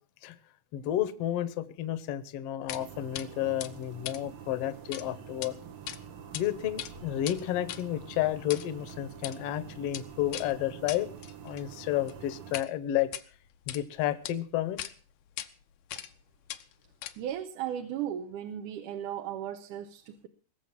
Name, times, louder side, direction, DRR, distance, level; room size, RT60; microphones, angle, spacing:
voice 1, 0.7-5.6 6.3-11.1 11.4-13.1 13.7-14.8, left 12 dB, 60° left, 14 dB, 1.8 m, -31 dB
sound 1, 2.7-2.8 3.1-3.3 3.6-5.0 5.3-5.5 5.9-6.4 6.7-12.7 13.0-13.8 14.2-14.3 14.8-14.9 15.4-15.5 15.9-16.2 16.5-17.4, left 12 dB, 85° left, 2.4 m, -41 dB
sound 2, 2.7-12.6, right 9 dB, 65° right, 1.4 m, -47 dB
voice 2, 17.2-20.3, right 10 dB, 80° right, 8 dB, 2.4 m, -36 dB
21.0 x 7.1 x 7.3 m, 0.42 s
omnidirectional pair, 3.6 m